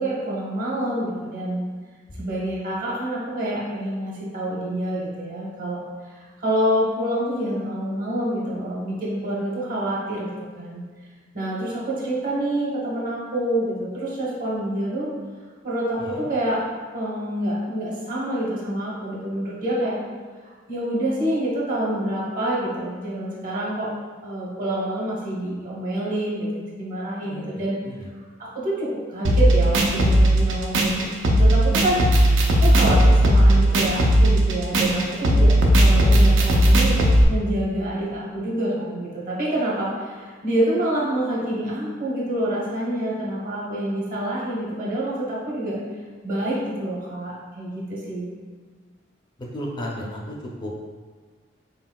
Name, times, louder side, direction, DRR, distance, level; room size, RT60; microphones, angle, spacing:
voice 1, 0.0-1.7 2.2-10.3 10.6-10.8 11.3-15.1 15.6-16.6 16.9-20.0 20.4-23.9 24.2-27.8 28.4-32.0 32.5-45.8 46.2-48.3, right 1 dB, 45° right, -5 dB, 1.0 m, -27 dB
sound 1, 29.2-37.2, right 1 dB, 80° right, 0.5 m, -17 dB
voice 2, 35.8-36.2 49.5-50.3 50.6-50.7, equal, 25° left, -2 dB, 0.4 m, -33 dB
3.9 x 3.8 x 2.2 m, 1.5 s
head